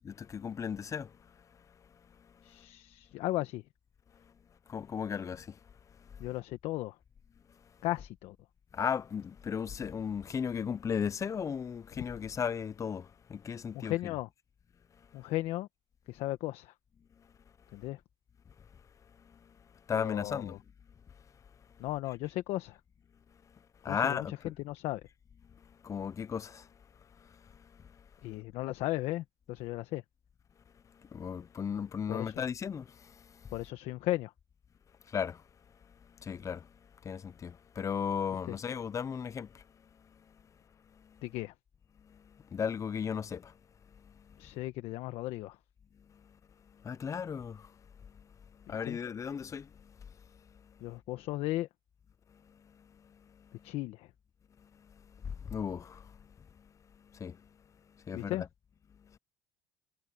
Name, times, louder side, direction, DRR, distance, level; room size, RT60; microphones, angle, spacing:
voice 1, 0.0-2.7 4.1-4.4 4.7-6.4 7.5-7.8 8.7-14.1 14.9-15.3 17.2-17.3 17.7-17.9 18.6-20.6 21.1-21.8 23.3-24.5 25.4-28.4 30.7-33.5 35.0-41.3 42.0-44.6 45.9-51.0 52.3-53.7 54.6-58.5 58.9-59.2, left 7 dB, 30° left, 0.6 m, -38 dB
voice 2, 2.4-3.6 6.2-7.0 7.8-8.4 13.7-14.3 15.1-15.7 16.1-16.7 17.7-18.0 19.9-20.4 21.8-22.8 23.8-24.2 24.6-25.0 28.2-30.0 32.1-32.3 33.5-34.3 41.2-41.5 44.4-45.6 48.9-49.0 50.8-51.7 53.6-54.1 58.1-58.4, left 17 dB, 70° left, 1.3 m, -35 dB
supercardioid pair, 85°, 10 cm